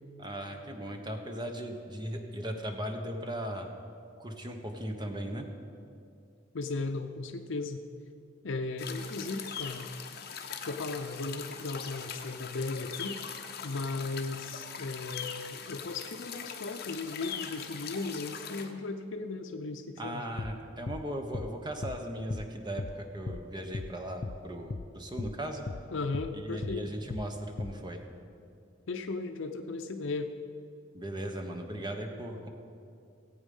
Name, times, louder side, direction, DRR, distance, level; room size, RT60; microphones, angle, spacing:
voice 1, 0.2-3.7 4.2-5.5 20.0-25.6 26.3-28.0 30.9-32.5, right 1 dB, 20° right, 4 dB, 1.1 m, -38 dB
voice 2, 6.5-7.8 8.4-9.9 10.6-13.2 13.6-20.3 25.9-26.9 28.9-30.3, left 3 dB, 70° left, 6 dB, 0.6 m, -36 dB
sound 1, 8.8-18.7, left 7 dB, 50° left, 0.9 m, -41 dB
sound 2, 20.4-20.5 20.9-21.0 21.3-21.5 21.8-22.0 22.3-22.5 22.8-22.9 23.3-23.4 23.7-23.9 24.2-24.4 24.7-24.9 25.2-25.3 25.7-25.8 26.1-26.3 26.6-26.8 27.1-27.3 27.6-27.7, left 3 dB, 30° left, 0.3 m, -37 dB
18.5 x 8.2 x 5.4 m, 2.5 s
head